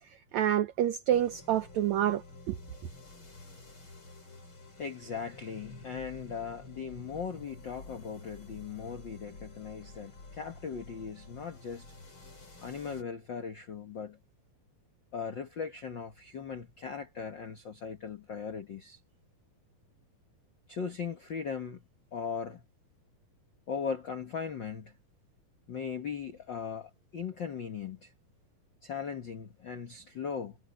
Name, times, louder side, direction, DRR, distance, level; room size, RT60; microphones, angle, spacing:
voice 1, 0.3-2.6, right 11 dB, 85° right, 1.6 m, -28 dB
sound 1, 1.1-13.0, left 2 dB, 35° left, 6.5 m, -50 dB
voice 2, 4.8-11.8 12.6-14.2 15.1-19.0 20.7-21.8 22.1-22.6 23.7-24.9 25.7-28.1 28.8-30.6, left 6 dB, 70° left, 1.1 m, -38 dB
omnidirectional pair, 4.2 m